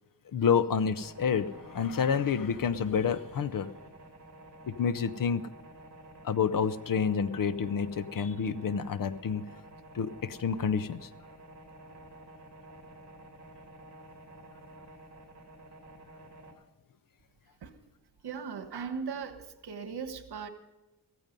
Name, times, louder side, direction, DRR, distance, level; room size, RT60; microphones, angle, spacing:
voice 1, 0.3-3.7 4.8-5.4 6.2-9.4 9.9-11.1, left 6 dB, 55° left, 14 dB, 0.8 m, -28 dB
sound 1, 0.9-16.5, right 1 dB, 40° right, 2.9 m, -51 dB
voice 2, 18.2-20.5, right 6 dB, 75° right, 9 dB, 1.4 m, -38 dB
15.0 x 14.5 x 5.3 m, 1.0 s
wide cardioid pair, 115°, 39 cm